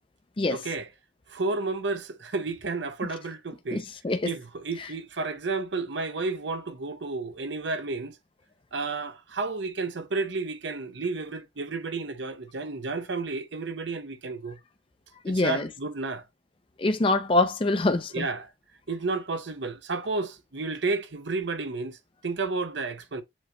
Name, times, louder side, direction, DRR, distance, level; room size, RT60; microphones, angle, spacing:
voice 1, 0.5-0.9 1.3-3.8 4.2-8.2 8.7-14.6 15.3-16.2 18.1-18.5 18.9-22.0 22.2-23.2, right 3 dB, 75° right, 0.7 m, -31 dB
voice 2, 3.7-4.3 15.2-15.7 16.8-18.3, left 2 dB, 30° left, 0.5 m, -25 dB
7.3 x 3.0 x 2.3 m
head